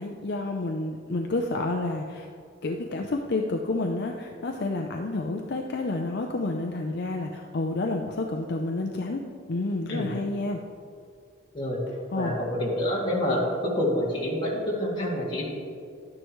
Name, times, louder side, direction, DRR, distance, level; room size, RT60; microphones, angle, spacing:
voice 1, 0.0-2.3 2.6-9.2 9.5-10.6 12.1-12.4, left 2 dB, 55° left, 2 dB, 0.6 m, -29 dB
voice 2, 12.1-15.5, left 1 dB, 25° left, -5 dB, 2.4 m, -27 dB
12.0 x 9.8 x 3.1 m, 2.3 s
head